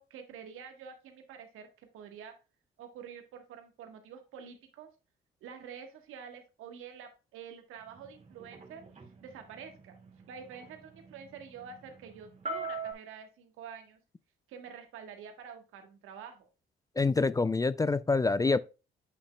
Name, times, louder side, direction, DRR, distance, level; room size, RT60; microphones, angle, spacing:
voice 1, 0.0-2.3 2.8-4.9 5.4-8.8 9.2-9.9 10.3-14.0 14.5-16.5, right 7 dB, 85° right, 1.4 m, -47 dB
sound 1, 7.9-12.9, right 3 dB, 35° right, 2.0 m, -42 dB
voice 2, 17.0-18.6, left 3 dB, 15° left, 0.3 m, -26 dB
8.3 x 5.8 x 2.2 m
supercardioid pair, 70°, 21 cm